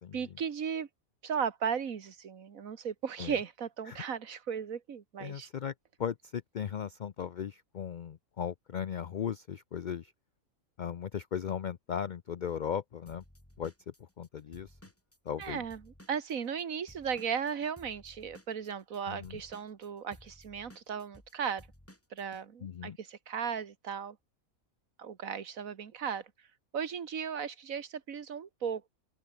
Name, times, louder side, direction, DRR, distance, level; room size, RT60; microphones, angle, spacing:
voice 1, 0.1-0.9 1.2-5.5 15.4-21.7 22.1-24.2 25.0-26.3 26.7-28.9, right 7 dB, 70° right, 1.9 m, -36 dB
voice 2, 5.2-5.7 6.0-10.1 10.8-13.2 13.6-14.7 15.3-15.6 19.1-19.4 22.6-23.0, left 8 dB, 60° left, 0.5 m, -37 dB
Drum kit / Drum, 13.1-16.6 16.9-22.4, equal, 10° left, 4.0 m, -56 dB
open air
omnidirectional pair, 1.5 m